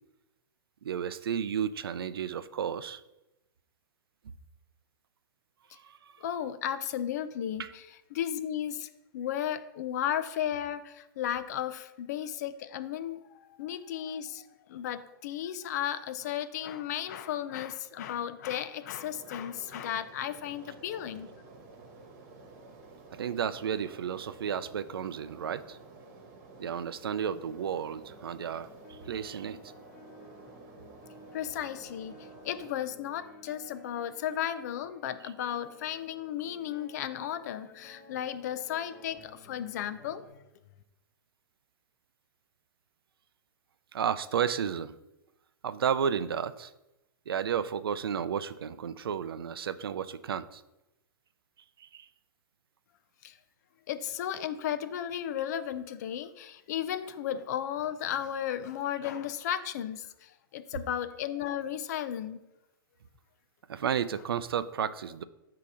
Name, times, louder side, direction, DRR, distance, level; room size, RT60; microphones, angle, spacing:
voice 1, 0.8-3.0 5.7-6.0 7.6-7.7 23.1-25.8 26.6-29.6 43.9-44.9 45.6-46.7 47.3-50.6 51.8-52.1 63.7-65.2, right 8 dB, 90° right, 14 dB, 0.5 m, -32 dB
voice 2, 6.2-21.3 31.3-32.2 32.4-40.4 53.2-53.4 53.9-62.4, left 10 dB, 45° left, 12 dB, 0.6 m, -34 dB
sound 1, 18.9-32.7, right 3 dB, 40° right, 1.2 m, -52 dB
sound 2, 27.4-40.3, left 2 dB, 10° left, 0.9 m, -55 dB
8.5 x 2.9 x 6.2 m, 0.97 s
hypercardioid pair, 155°, 12 cm